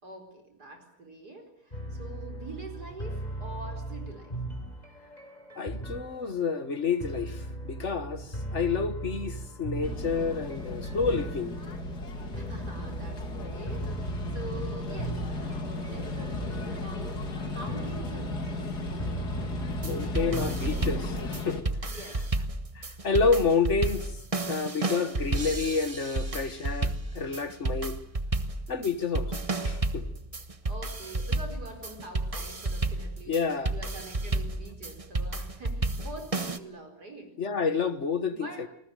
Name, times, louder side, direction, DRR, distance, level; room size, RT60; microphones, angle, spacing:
voice 1, 0.0-4.3 12.3-18.7 21.9-22.2 29.2-29.8 30.7-33.4 33.7-37.3 38.3-38.7, right 2 dB, 75° right, 5.2 m, -45 dB
sound 1, 1.7-21.0, right 1 dB, 25° left, 4.0 m, -38 dB
voice 2, 5.6-11.5 19.8-21.6 22.8-24.1 24.5-28.0 28.7-29.3 29.6-30.0 33.3-33.7 37.4-38.7, left 5 dB, 50° left, 1.7 m, -29 dB
sound 2, 9.8-21.6, left 2 dB, 75° left, 3.2 m, -35 dB
sound 3, 19.7-36.6, right 2 dB, 25° right, 1.2 m, -32 dB
27.0 x 20.5 x 9.2 m
omnidirectional pair, 1.7 m